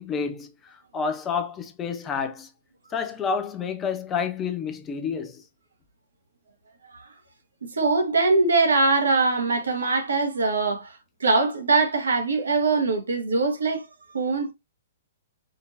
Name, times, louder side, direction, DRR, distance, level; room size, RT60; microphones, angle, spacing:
voice 1, 0.0-2.5 2.9-5.4, left 6 dB, 20° left, 0.7 m, -29 dB
voice 2, 7.6-13.9 14.1-14.5, right 3 dB, 70° right, 1.2 m, -22 dB
5.1 x 2.8 x 2.6 m
figure-of-eight pair, 115°, 0 cm